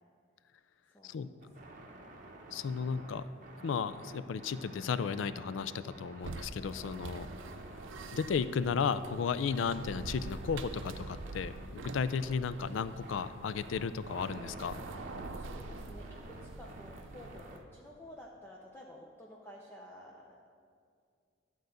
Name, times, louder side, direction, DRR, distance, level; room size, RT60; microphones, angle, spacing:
voice 1, 0.9-2.0 7.2-7.4 15.3-20.5, left 1 dB, 10° left, -3 dB, 0.6 m, -52 dB
sound 1, 1.4-17.6, right 1 dB, 40° right, 0.9 m, -50 dB
voice 2, 2.5-3.3 3.6-7.3 8.1-14.8, left 6 dB, 70° left, 15 dB, 0.3 m, -34 dB
sound 2, 6.2-17.6, right 3 dB, 70° right, 0.5 m, -46 dB
11.5 x 3.9 x 7.8 m, 2.2 s
head